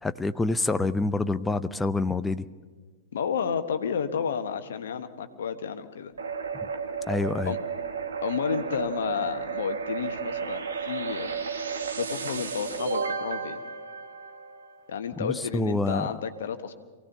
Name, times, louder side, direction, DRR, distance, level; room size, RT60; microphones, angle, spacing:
voice 1, 0.0-2.5 7.1-7.5 15.2-16.1, left 2 dB, 10° left, 12 dB, 0.7 m, -27 dB
voice 2, 3.1-6.1 7.4-7.6 8.2-11.3 12.0-13.6 14.9-16.7, left 7 dB, 65° left, 9 dB, 1.3 m, -31 dB
sound 1, 6.2-14.8, right 5 dB, 70° right, 1.8 m, -33 dB
24.0 x 17.0 x 6.8 m, 1.4 s
figure-of-eight pair, 100°, 0 cm